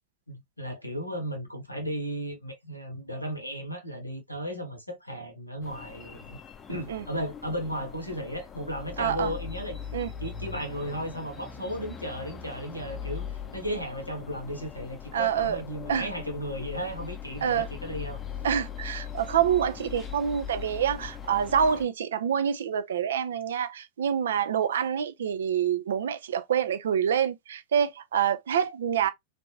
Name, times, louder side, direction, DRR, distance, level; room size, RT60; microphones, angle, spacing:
voice 1, 0.3-6.4 6.7-9.8 10.2-18.2, equal, 90° left, 0.9 m, -35 dB
sound 1, 5.6-21.9, left 8 dB, 20° left, 0.5 m, -40 dB
voice 2, 9.0-9.3 9.9-10.1 15.1-15.6 15.9-16.1 17.4-17.7 18.4-29.1, right 8 dB, 65° right, 0.4 m, -26 dB
3.3 x 2.6 x 2.8 m
figure-of-eight pair, 90°, 0 cm